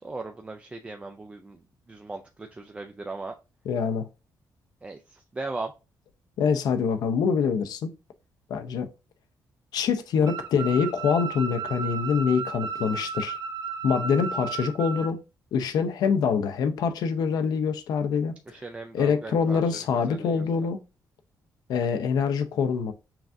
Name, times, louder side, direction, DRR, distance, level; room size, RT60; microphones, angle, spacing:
voice 1, 0.0-3.4 4.8-5.7 14.2-14.3 18.5-19.6 20.1-20.4, right 3 dB, 20° right, 0.3 m, -38 dB
voice 2, 3.7-4.1 6.4-7.9 8.5-8.9 9.7-13.4 13.8-15.2 15.5-18.3 18.9-20.8 21.7-22.9, left 6 dB, 75° left, 0.6 m, -25 dB
sound 1, 10.3-15.1, right 5 dB, 90° right, 0.8 m, -34 dB
5.7 x 2.4 x 2.5 m
cardioid pair, 135°, 7 cm